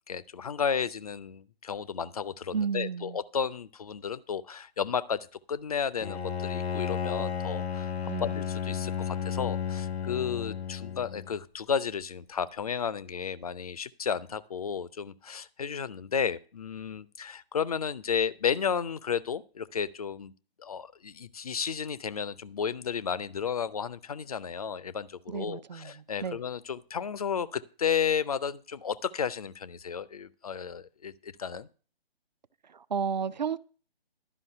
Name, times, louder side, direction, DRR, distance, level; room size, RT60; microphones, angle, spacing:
voice 1, 0.1-7.9 8.2-20.3 20.6-31.7, left 7 dB, 40° left, 0.5 m, -33 dB
voice 2, 2.5-3.2 8.1-8.3 25.3-26.4 32.7-33.6, right 6 dB, 45° right, 0.4 m, -32 dB
Bowed string instrument, 6.0-11.4, left 7 dB, 85° left, 0.6 m, -33 dB
12.0 x 5.3 x 6.5 m
figure-of-eight pair, 145°, 30 cm